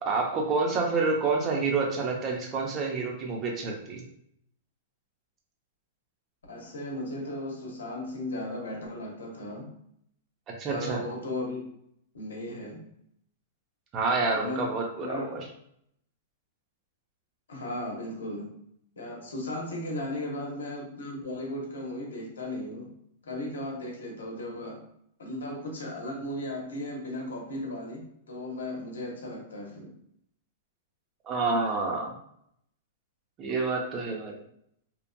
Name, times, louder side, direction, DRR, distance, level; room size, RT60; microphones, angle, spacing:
voice 1, 0.0-4.0 10.6-11.0 13.9-15.4 31.3-32.1 33.4-34.4, right 4 dB, 30° right, 0 dB, 0.7 m, -28 dB
voice 2, 6.5-9.7 10.7-11.7 12.1-12.8 14.3-14.7 15.0-15.4 17.5-18.5 19.0-22.9 23.2-24.8 25.2-29.9, left 1 dB, 85° left, 0 dB, 0.8 m, -36 dB
3.0 x 2.4 x 2.2 m, 0.72 s
hypercardioid pair, 120°, 0 cm